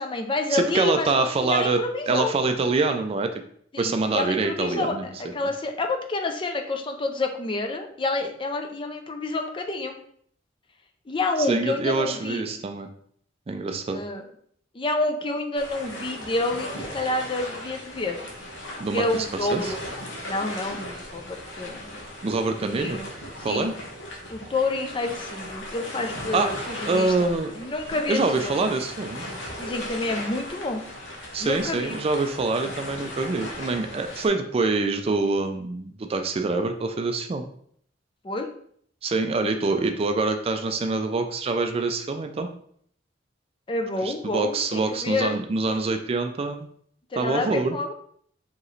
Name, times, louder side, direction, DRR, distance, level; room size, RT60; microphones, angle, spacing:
voice 1, 0.0-2.3 3.7-9.9 11.1-12.4 13.9-14.2 14.7-18.2 18.9-19.8 20.3-21.9 22.6-23.1 23.4-23.7 24.3-28.6 29.6-30.8 31.4-32.0 38.2-38.5 43.7-45.4 47.1-47.9, left 2 dB, 25° left, 4 dB, 0.5 m, -29 dB
voice 2, 0.5-1.8 2.1-3.3 3.8-5.1 11.5-12.9 13.5-14.0 18.8-19.3 19.5-19.7 22.2-23.0 23.4-23.7 26.3-26.5 26.9-27.5 28.1-29.3 31.3-37.4 39.0-42.5 44.0-46.7 47.2-47.8, right 3 dB, 30° right, 6 dB, 0.4 m, -25 dB
sound 1, 15.6-34.3, left 1 dB, 90° left, 1.0 m, -37 dB
4.6 x 3.0 x 3.1 m, 0.62 s
head